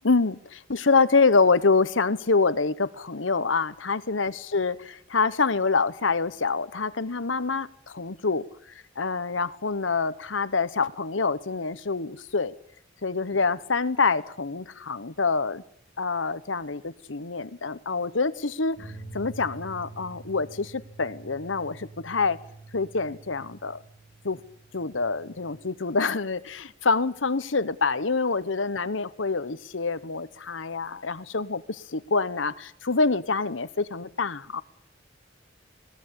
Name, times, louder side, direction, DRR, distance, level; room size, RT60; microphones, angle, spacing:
voice 1, 0.0-8.4 9.0-12.5 13.0-15.6 16.0-22.4 22.7-23.8 24.2-24.4 24.7-34.6, left 4 dB, 80° left, 14 dB, 1.2 m, -26 dB
sound 1, 18.8-25.7, right 3 dB, 40° left, 6.3 m, -46 dB
20.5 x 18.5 x 8.9 m, 0.66 s
head